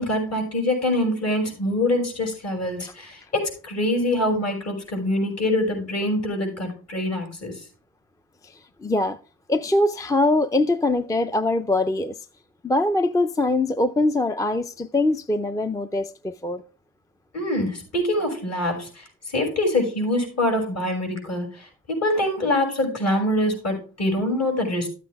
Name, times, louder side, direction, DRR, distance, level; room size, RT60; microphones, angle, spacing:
voice 1, 0.0-7.6 17.3-24.9, left 1 dB, 55° left, 6.2 m, -24 dB
voice 2, 8.4-9.2 9.5-12.2 12.6-16.6, left 2 dB, 10° left, 0.4 m, -23 dB
13.5 x 8.2 x 3.5 m
cardioid pair, 120°, 31 cm